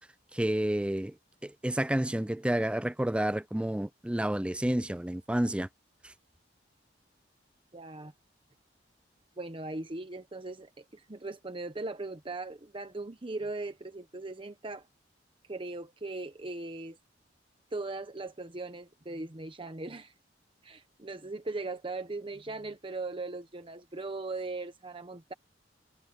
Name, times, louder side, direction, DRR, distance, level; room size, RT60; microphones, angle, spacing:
voice 1, 0.3-1.1 1.4-5.7 6.0-6.1, right 1 dB, 5° right, 0.4 m, -30 dB
voice 2, 7.7-8.1 9.4-14.9 15.5-17.0 17.7-20.1 20.6-25.3, right 2 dB, 30° right, 0.9 m, -39 dB
head